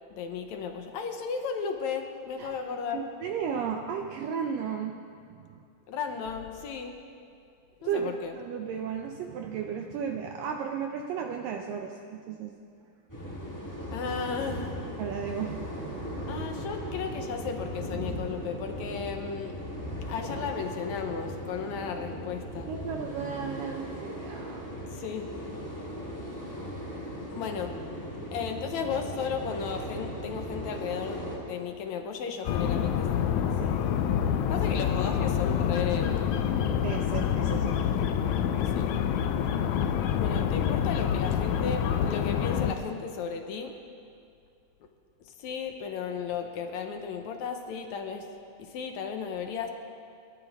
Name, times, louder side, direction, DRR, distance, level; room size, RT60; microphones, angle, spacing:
voice 1, 0.1-3.1 5.9-7.0 7.8-8.4 13.9-14.8 16.3-19.6 20.1-22.7 24.9-25.3 27.3-27.8 28.3-33.2 34.5-36.3 38.7-38.9 40.1-43.8 45.3-48.3 48.6-49.7, left 6 dB, 70° left, 5 dB, 1.8 m, -34 dB
voice 2, 2.9-5.0 5.3-5.6 7.8-12.5 15.0-16.3 22.7-24.8 33.6-33.8 36.8-37.8, right 7 dB, 75° right, 3 dB, 2.3 m, -34 dB
sound 1, 13.1-31.4, equal, 5° left, 2.9 m, -38 dB
sound 2, 32.4-42.7, left 8 dB, 85° left, 1.6 m, -27 dB
30.0 x 13.0 x 3.6 m, 2.3 s
omnidirectional pair, 4.3 m